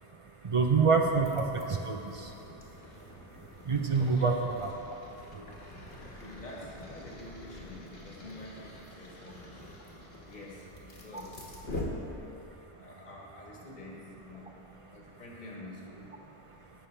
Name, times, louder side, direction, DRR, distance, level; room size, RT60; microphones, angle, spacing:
voice 1, 0.4-1.4 1.9-2.0 3.7-4.7, right 5 dB, 40° right, 3 dB, 0.5 m, -25 dB
sound 1, 1.0-12.6, left 1 dB, 75° left, 1.5 m, -45 dB
voice 2, 4.0-4.3 6.0-9.6 10.3-11.5 12.0-12.1 12.8-14.6 14.9-16.2, left 1 dB, 45° left, -3 dB, 1.5 m, -48 dB
15.0 x 5.6 x 3.3 m, 2.9 s
omnidirectional pair, 1.0 m